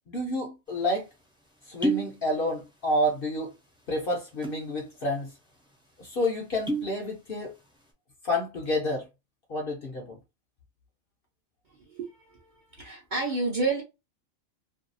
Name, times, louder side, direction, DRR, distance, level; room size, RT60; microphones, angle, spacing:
voice 1, 0.1-1.0 1.7-3.5 3.9-5.3 6.0-7.5 8.2-9.1 9.5-10.2, left 1 dB, 55° left, 0.7 m, -29 dB
sound 1, 0.7-0.8 1.6-2.2 2.4-3.1 3.4-3.5 4.2-4.7 5.2-5.3 5.5-5.7 6.4-7.0 7.4-7.8, right 2 dB, 5° right, 0.5 m, -30 dB
voice 2, 11.8-13.8, right 3 dB, 45° right, 0.7 m, -30 dB
2.6 x 2.3 x 2.6 m
omnidirectional pair, 1.4 m